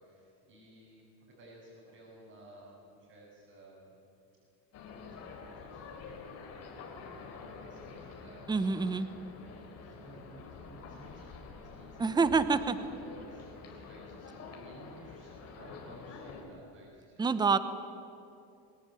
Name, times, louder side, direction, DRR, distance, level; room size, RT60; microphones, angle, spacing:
voice 1, 0.0-4.0 5.1-8.4 8.7-12.6 12.9-17.3, right 2 dB, 40° right, -6 dB, 7.5 m, -56 dB
sound 1, 4.7-16.4, left 4 dB, 45° left, 3.9 m, -48 dB
voice 2, 8.5-9.1 12.0-12.8 17.2-17.6, right 4 dB, 10° right, 12 dB, 0.9 m, -27 dB
23.5 x 18.5 x 9.2 m, 2.6 s
cardioid pair, 145°, 36 cm